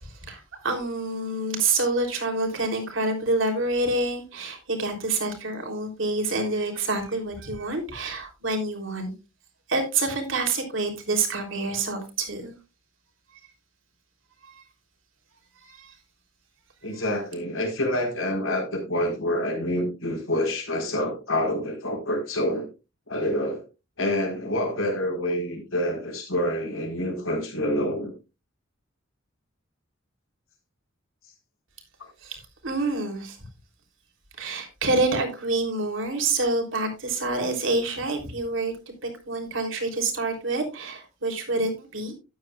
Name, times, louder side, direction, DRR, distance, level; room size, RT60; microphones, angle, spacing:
voice 1, 0.0-9.1 9.7-12.5 14.4-14.6 15.6-15.9 32.2-33.4 34.4-38.7 39.0-42.1, right 2 dB, 70° right, 3.5 m, -27 dB
voice 2, 16.8-22.7 23.1-23.6 24.0-28.1, left 1 dB, 80° left, 4.4 m, -27 dB
13.0 x 10.5 x 2.4 m
head